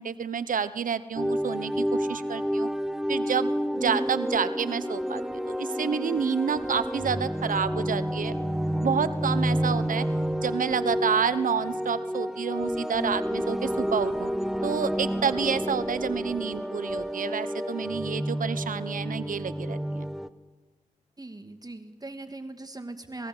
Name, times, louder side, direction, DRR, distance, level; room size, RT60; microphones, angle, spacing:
voice 1, 0.0-2.7 3.1-3.5 3.8-5.2 5.6-8.3 8.7-10.1 10.4-14.3 14.6-20.1, right 6 dB, 80° right, 14 dB, 1.0 m, -29 dB
sound 1, 1.2-20.3, equal, 5° right, 1.1 m, -29 dB
voice 2, 21.2-23.3, right 2 dB, 30° right, 7 dB, 2.3 m, -40 dB
27.5 x 20.5 x 8.0 m, 1.3 s
cardioid pair, 45°, 14 cm